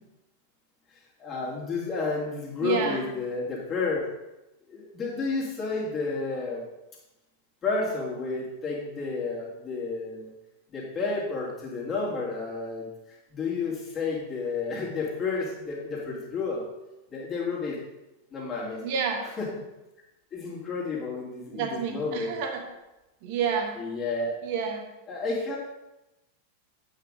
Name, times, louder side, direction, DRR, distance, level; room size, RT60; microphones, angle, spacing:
voice 1, 1.2-4.0 4.7-6.6 7.6-10.3 10.7-12.9 13.3-16.6 17.1-17.8 18.3-18.8 19.4-19.5 20.3-22.4 23.8-24.4 25.1-25.6, left 4 dB, 25° left, -5 dB, 2.7 m, -31 dB
voice 2, 2.6-3.1 18.8-19.3 21.5-22.6 23.2-23.8 24.4-24.9, right 6 dB, 45° right, 3 dB, 1.3 m, -29 dB
9.0 x 5.7 x 3.8 m, 0.97 s
figure-of-eight pair, 90°, 0 cm